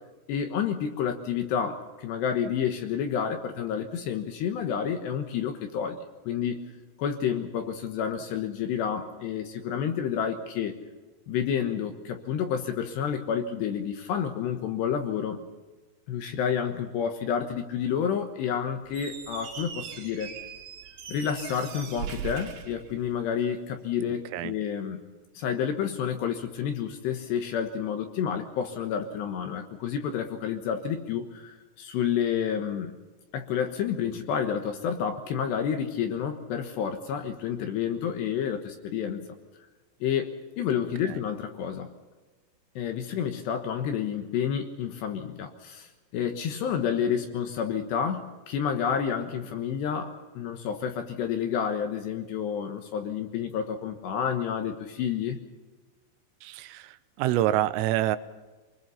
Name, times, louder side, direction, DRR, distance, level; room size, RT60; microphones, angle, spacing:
voice 1, 0.3-6.0 6.3-6.7 7.0-10.7 11.3-15.4 16.1-20.3 21.1-25.1 25.3-33.0 33.3-39.3 40.0-40.3 40.6-41.9 42.8-55.4, left 8 dB, 70° left, 6 dB, 3.0 m, -29 dB
Squeak, 18.9-23.5, right 7 dB, 60° right, 4.7 m, -40 dB
voice 2, 56.4-58.2, right 13 dB, 80° right, 13 dB, 3.4 m, -27 dB
24.5 x 20.5 x 5.7 m, 1.3 s
omnidirectional pair, 6.0 m